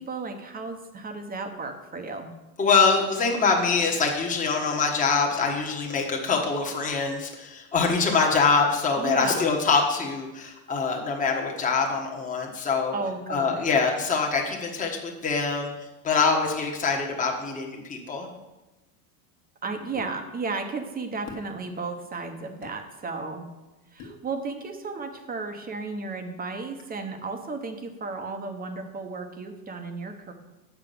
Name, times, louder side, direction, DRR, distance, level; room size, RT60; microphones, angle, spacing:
voice 1, 0.0-2.3 9.0-9.5 12.9-13.7 19.6-23.5 23.9-30.3, right 4 dB, 20° right, 6 dB, 0.9 m, -34 dB
voice 2, 2.6-12.9 13.3-18.3, left 4 dB, 15° left, 0 dB, 1.3 m, -24 dB
sound 1, 20.0-20.1 21.3-21.5 22.6-22.8 24.0-24.2, left 4 dB, 45° left, 1.5 m, -41 dB
8.1 x 6.1 x 6.8 m, 1.1 s
supercardioid pair, 140°, 46 cm